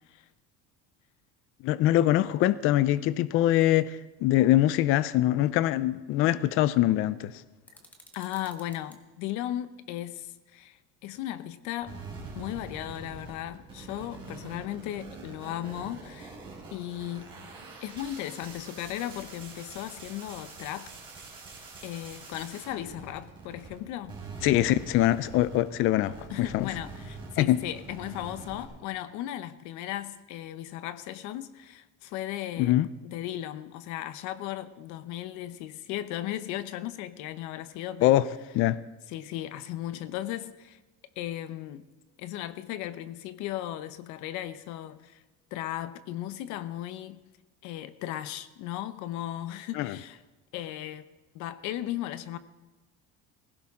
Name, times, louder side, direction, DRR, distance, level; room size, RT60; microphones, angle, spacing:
voice 1, 1.6-7.4 24.4-26.7 27.4-27.6 32.6-32.9 38.0-38.2 38.5-38.8 49.7-50.0, left 14 dB, 45° left, 0.4 m, -23 dB
sound 1, 7.6-9.0, equal, 5° left, 1.4 m, -55 dB
voice 2, 8.1-12.0 12.4-16.3 16.7-17.3 17.8-20.9 21.8-24.2 26.3-32.8 33.0-38.2 39.1-40.8 41.2-41.9 42.2-45.2 45.5-47.2 47.6-50.2 50.5-51.0 51.3-52.4, left 13 dB, 70° left, 0.9 m, -36 dB
sound 2, 11.8-23.8 24.0-28.6, right 4 dB, 15° right, 4.4 m, -44 dB
19.5 x 16.5 x 3.7 m
cardioid pair, 180°, 30 cm